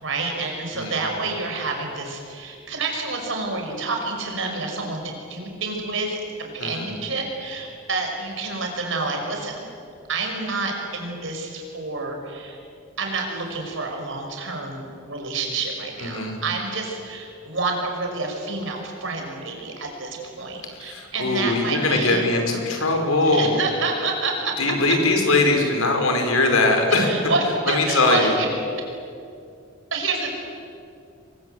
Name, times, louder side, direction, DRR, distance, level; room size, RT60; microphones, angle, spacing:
voice 1, 0.0-5.0 5.3-9.6 10.1-12.6 13.0-22.3 23.2-24.5 27.0-28.5 29.9-30.3, right 3 dB, 65° right, 2 dB, 5.8 m, -28 dB
voice 2, 6.6-6.9 16.0-16.4 20.7-23.6 24.6-27.1 27.7-28.3, left 2 dB, 90° left, 4 dB, 5.3 m, -21 dB
29.0 x 22.5 x 8.1 m, 2.5 s
head